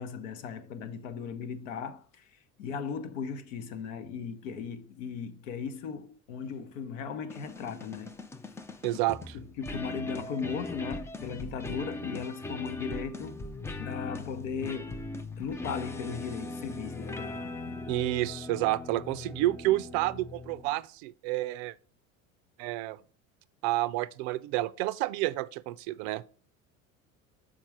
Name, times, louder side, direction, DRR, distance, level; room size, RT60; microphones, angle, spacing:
voice 1, 0.0-8.2 9.3-13.4 13.8-15.0 15.4-17.9, left 6 dB, 70° left, 0.9 m, -37 dB
sound 1, 7.3-20.8, left 2 dB, 10° left, 0.3 m, -40 dB
voice 2, 8.8-9.4 17.9-21.7 22.6-23.0 23.6-26.3, right 17 dB, 55° right, 0.4 m, -30 dB
6.5 x 3.7 x 6.1 m
figure-of-eight pair, 70°, 40 cm